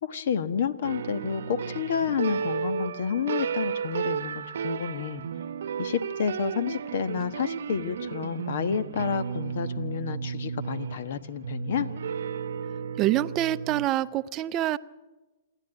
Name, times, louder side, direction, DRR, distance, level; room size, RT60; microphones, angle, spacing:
voice 1, 0.0-5.2 5.8-11.9, left 7 dB, 65° left, 13 dB, 1.3 m, -30 dB
sound 1, 0.8-13.9, right 7 dB, 70° right, 0.9 m, -33 dB
voice 2, 13.0-14.8, right 13 dB, 30° right, 14 dB, 0.6 m, -26 dB
27.5 x 11.5 x 9.1 m, 1.2 s
hypercardioid pair, 125°, 0 cm